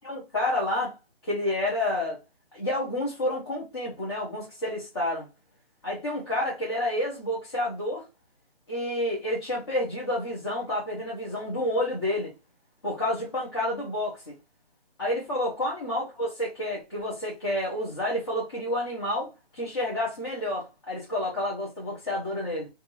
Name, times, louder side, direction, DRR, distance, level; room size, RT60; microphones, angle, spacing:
voice 1, 0.0-1.0 1.2-2.2 2.5-5.3 5.8-8.0 8.7-12.3 12.8-14.3 15.0-22.7, left 1 dB, 25° left, 0.6 m, -29 dB
2.5 x 2.3 x 2.8 m
hypercardioid pair, 165°, 30 cm